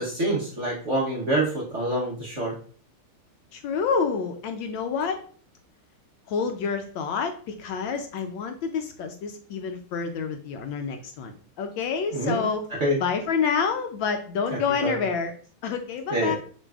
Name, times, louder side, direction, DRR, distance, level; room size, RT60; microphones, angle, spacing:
voice 1, 0.0-2.5 12.1-12.4 12.8-13.0 14.5-15.0 16.1-16.4, right 1 dB, 55° right, -4 dB, 0.8 m, -26 dB
voice 2, 3.5-5.2 6.3-12.7 13.0-15.3 15.6-16.4, left 5 dB, 75° left, 6 dB, 1.2 m, -28 dB
6.4 x 3.2 x 2.3 m, 0.43 s
omnidirectional pair, 2.4 m